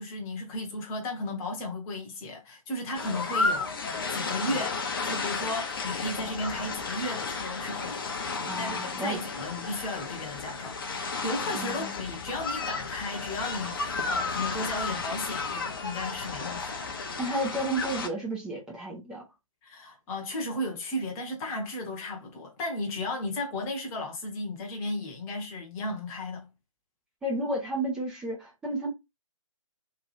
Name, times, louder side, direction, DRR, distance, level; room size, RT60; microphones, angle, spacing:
voice 1, 0.0-8.2 8.6-16.8 19.6-26.5, left 1 dB, 15° left, 0.8 m, -35 dB
sound 1, 2.9-18.1, left 4 dB, 40° left, 0.6 m, -33 dB
voice 2, 8.5-9.2 11.5-11.9 17.2-19.2 27.2-28.9, right 1 dB, 5° right, 0.4 m, -32 dB
3.1 x 2.4 x 4.0 m
figure-of-eight pair, 140°, 17 cm